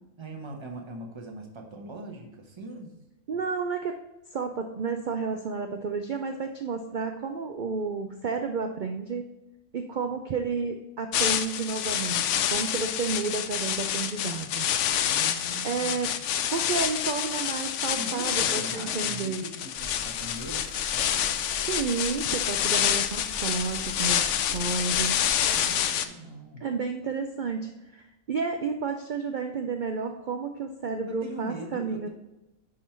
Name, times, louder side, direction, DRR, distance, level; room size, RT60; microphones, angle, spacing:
voice 1, 0.2-2.9 15.0-16.2 18.0-21.4 25.5-26.6 31.1-32.1, right 1 dB, 20° right, 2 dB, 0.9 m, -41 dB
voice 2, 3.3-4.0 4.3-9.3 9.7-14.7 15.6-16.1 16.5-19.4 21.7-25.2 26.6-28.0 28.3-32.1, right 5 dB, 75° right, 5 dB, 0.4 m, -31 dB
sound 1, 11.1-26.1, left 10 dB, 65° left, 0.8 m, -28 dB
sound 2, 19.7-25.9, left 1 dB, 30° left, 2.5 m, -45 dB
10.5 x 3.8 x 4.4 m, 0.98 s
omnidirectional pair, 1.5 m